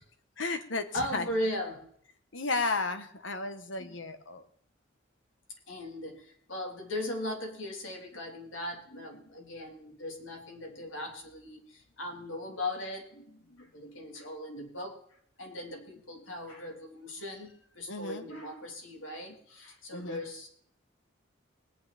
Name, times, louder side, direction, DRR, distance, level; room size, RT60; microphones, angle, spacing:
voice 1, 0.4-1.2 2.3-4.4 17.9-18.2 19.9-20.2, left 3 dB, 70° left, 9 dB, 1.4 m, -33 dB
voice 2, 0.9-1.9 3.8-3.9 5.7-15.0 15.4-20.5, left 1 dB, 90° left, 2 dB, 3.5 m, -38 dB
20.0 x 9.2 x 4.3 m, 0.63 s
head